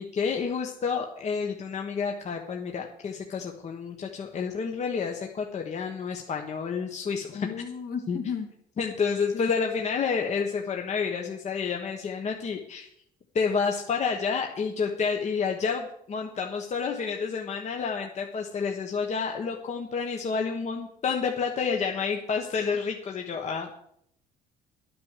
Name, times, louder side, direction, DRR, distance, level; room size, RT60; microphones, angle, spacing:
voice 1, 0.0-7.5 8.1-8.2 8.8-12.9 13.3-23.7, left 5 dB, 40° left, 2 dB, 1.4 m, -29 dB
voice 2, 7.3-8.5 9.3-9.5, left 6 dB, 60° left, 5 dB, 2.4 m, -34 dB
11.5 x 9.5 x 6.8 m, 0.72 s
cardioid pair, 110°, 17 cm